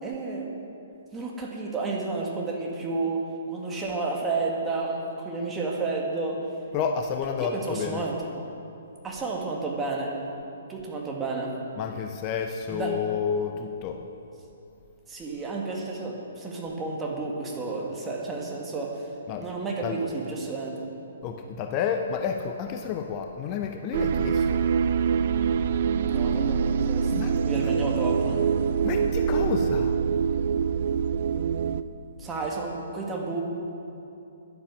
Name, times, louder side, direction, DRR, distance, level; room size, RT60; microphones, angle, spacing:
voice 1, 0.0-0.5 1.1-3.2 3.5-6.4 7.4-8.3 9.0-10.2 10.7-11.5 12.7-13.0 15.1-19.1 19.4-20.8 26.0-27.1 27.4-28.5 32.2-33.4, right 3 dB, 15° right, -2 dB, 1.9 m, -31 dB
voice 2, 6.7-8.0 11.8-14.1 19.3-19.5 19.8-20.0 21.2-24.6 27.1-27.7 28.8-30.0, left 7 dB, 30° left, 5 dB, 0.7 m, -30 dB
sound 1, 23.9-31.8, right 6 dB, 50° right, 0.4 m, -25 dB
11.5 x 10.0 x 6.1 m, 2.8 s
figure-of-eight pair, 125°, 0 cm